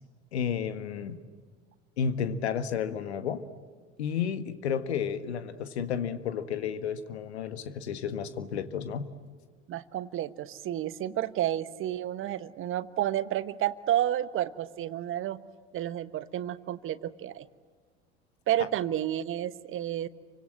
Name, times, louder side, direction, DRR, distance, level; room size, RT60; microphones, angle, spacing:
voice 1, 0.3-1.2 2.0-3.4 4.0-9.1, left 7 dB, 70° left, 10 dB, 1.8 m, -32 dB
voice 2, 9.7-15.4 15.7-17.5 18.5-20.1, right 12 dB, 35° right, 14 dB, 1.2 m, -31 dB
30.0 x 25.0 x 7.7 m, 1.5 s
figure-of-eight pair, 70°, 34 cm